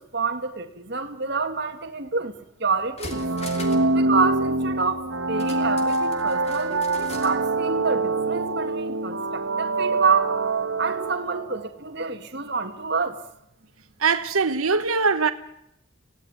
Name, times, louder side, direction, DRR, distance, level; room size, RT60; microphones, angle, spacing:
voice 1, 0.0-3.3 3.9-10.3 10.8-13.2, right 4 dB, 50° right, 1.8 m, -28 dB
sound 1, 2.4-2.5 2.8-3.9 4.2-4.3 5.4-7.4 7.7-7.8, left 2 dB, 30° left, 3.0 m, -41 dB
sound 2, 3.1-11.7, right 3 dB, 70° right, 1.4 m, -25 dB
voice 2, 14.0-15.3, right 4 dB, 90° right, 1.2 m, -21 dB
26.5 x 17.5 x 9.4 m
head